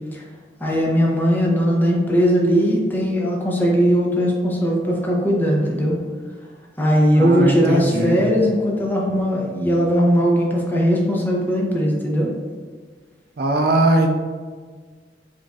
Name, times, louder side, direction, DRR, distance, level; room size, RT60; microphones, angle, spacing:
voice 1, 0.6-6.0 6.8-12.3, equal, 10° left, -3 dB, 0.6 m, -19 dB
voice 2, 7.2-8.2 13.4-14.2, right 2 dB, 60° right, 3 dB, 0.4 m, -19 dB
5.0 x 2.6 x 2.3 m, 1.5 s
head